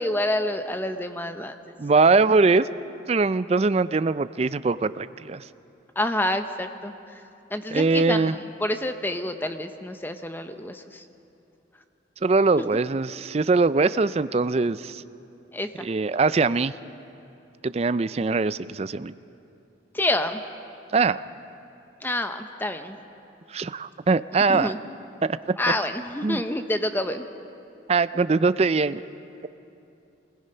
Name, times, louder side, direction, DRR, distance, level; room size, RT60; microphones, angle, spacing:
voice 1, 0.0-1.6 6.0-6.9 7.5-8.3 8.6-11.0 15.5-15.9 19.9-20.4 22.0-23.0 24.5-24.8 25.6-27.3, left 1 dB, 10° left, 8 dB, 0.8 m, -28 dB
voice 2, 1.8-2.7 3.1-5.4 7.7-8.3 12.2-15.0 15.8-16.7 17.6-19.1 20.9-21.2 23.5-24.7 25.2-25.4 26.2-26.4 27.9-29.0, right 4 dB, 35° right, 15 dB, 0.4 m, -22 dB
24.5 x 20.5 x 5.6 m, 2.8 s
head